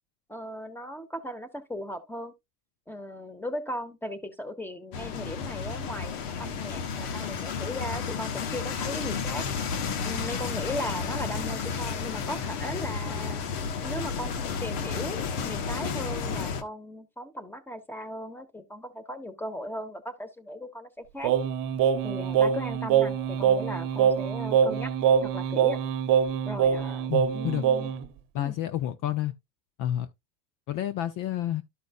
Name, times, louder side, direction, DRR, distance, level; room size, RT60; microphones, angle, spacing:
voice 1, 0.3-2.3 2.9-9.4 10.0-13.4 13.8-21.3 22.0-24.9 25.2-25.8 26.4-27.9 28.4-28.6, left 1 dB, 5° left, 1.4 m, -37 dB
sound 1, 4.9-16.6, left 6 dB, 70° left, 1.4 m, -32 dB
Singing, 21.2-28.1, right 8 dB, 45° right, 1.0 m, -24 dB
voice 2, 27.1-27.6 28.3-29.3 29.8-30.1 30.7-31.6, left 12 dB, 40° left, 0.6 m, -29 dB
13.0 x 5.2 x 2.5 m
supercardioid pair, 115°, 48 cm